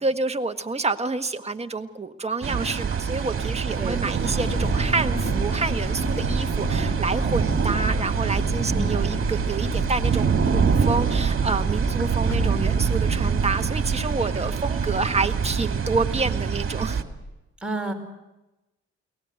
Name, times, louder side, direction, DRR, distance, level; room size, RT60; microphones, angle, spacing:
voice 1, 0.0-17.0, right 3 dB, 20° right, 6 dB, 1.6 m, -28 dB
sound 1, 2.4-17.0, right 6 dB, 45° right, 2.4 m, -25 dB
sound 2, 2.9-3.4 3.7-4.0 4.3-4.6 5.0-5.2 5.8-5.9 6.4-13.0 14.8-15.3 15.7-15.8 16.2-16.3, left 4 dB, 85° left, 6.8 m, -42 dB
voice 2, 3.8-4.3 8.7-9.0 17.6-17.9, right 1 dB, 5° right, 0 dB, 5.0 m, -30 dB
sound 3, 4.2-17.2, equal, 30° left, 7.3 m, -32 dB
23.0 x 19.0 x 7.9 m, 1.0 s
cardioid pair, 90°, 30 cm